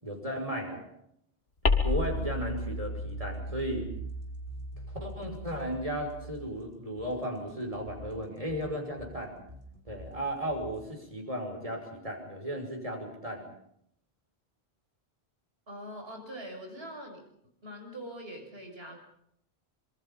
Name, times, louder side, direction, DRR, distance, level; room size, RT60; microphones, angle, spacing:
voice 1, 0.0-0.8 1.8-3.9 5.0-9.3 9.9-13.5, equal, 30° right, 2 dB, 5.9 m, -35 dB
sound 1, 1.6-6.5, left 2 dB, 70° left, 2.3 m, -33 dB
sound 2, 3.0-11.0, left 1 dB, 50° right, 5.4 m, -49 dB
voice 2, 15.7-17.2 17.6-19.0, equal, 65° right, 3 dB, 6.8 m, -43 dB
26.0 x 24.0 x 5.5 m, 0.71 s
omnidirectional pair, 1.1 m